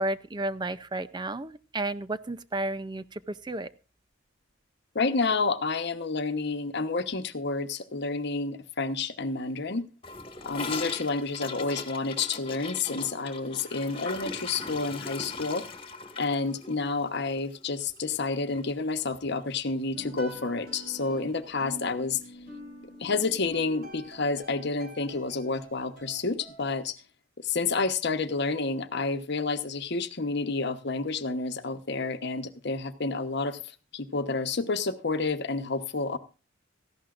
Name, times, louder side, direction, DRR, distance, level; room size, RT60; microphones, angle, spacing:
voice 1, 0.0-3.7, right 2 dB, 20° right, 0.5 m, -32 dB
voice 2, 4.9-9.9 10.4-15.7 16.2-22.2 23.0-27.0 27.4-33.6 33.9-36.2, left 3 dB, 60° left, 1.0 m, -29 dB
Gurgling / Toilet flush, 10.0-18.3 18.5-18.7 19.0-19.4 19.7-19.8 20.1-20.2 21.1-21.2, left 4 dB, 30° left, 1.9 m, -40 dB
sound 1, 19.9-26.8, equal, 50° right, 7.1 m, -46 dB
17.5 x 14.5 x 2.5 m
head